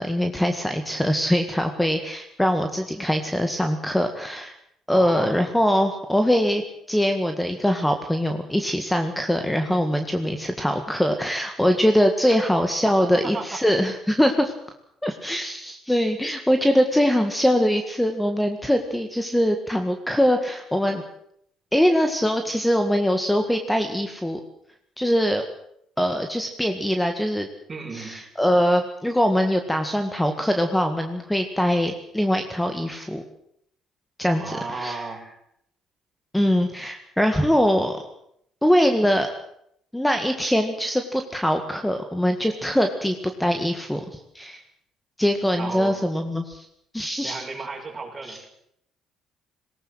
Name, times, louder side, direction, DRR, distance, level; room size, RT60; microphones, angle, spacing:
voice 1, 0.0-4.5 4.9-6.6 6.9-14.5 15.0-21.0 21.7-24.4 25.0-25.4 26.0-27.5 27.9-33.2 34.2-35.0 36.3-38.0 38.6-39.3 39.9-43.1 43.4-44.6 45.2-46.7 46.9-47.4 48.3-48.4, equal, 5° left, 6 dB, 1.9 m, -22 dB
voice 2, 4.9-5.4 12.3-12.4 13.2-13.6 27.7-28.2 34.3-35.3 45.6-46.0 47.2-48.4, right 4 dB, 30° right, 1 dB, 6.8 m, -34 dB
20.0 x 18.0 x 7.9 m, 0.73 s
supercardioid pair, 85°, 0 cm